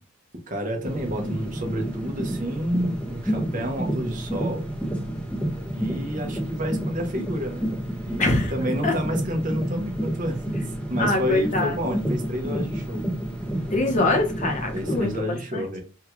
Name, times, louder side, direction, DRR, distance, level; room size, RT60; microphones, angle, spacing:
voice 1, 0.5-4.6 5.7-7.7 8.0-10.6 10.9-13.0 14.7-15.8, equal, 40° right, 3 dB, 0.7 m, -29 dB
sound 1, 0.8-15.2, right 1 dB, 5° left, 0.5 m, -30 dB
voice 2, 8.2-8.5 8.8-8.9 11.0-12.0 13.7-15.8, left 2 dB, 35° left, 2 dB, 0.8 m, -24 dB
3.5 x 2.3 x 3.0 m, 0.33 s
head